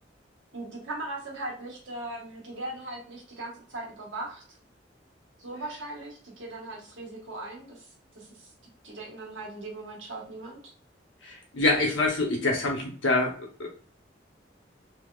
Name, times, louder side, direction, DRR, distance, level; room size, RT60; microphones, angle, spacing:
voice 1, 0.5-4.4 5.4-7.8 8.1-8.5 8.8-10.6, right 2 dB, 85° right, -2 dB, 1.3 m, -39 dB
voice 2, 11.2-13.7, left 2 dB, 90° left, 0 dB, 1.0 m, -26 dB
3.5 x 2.8 x 2.4 m, 0.43 s
head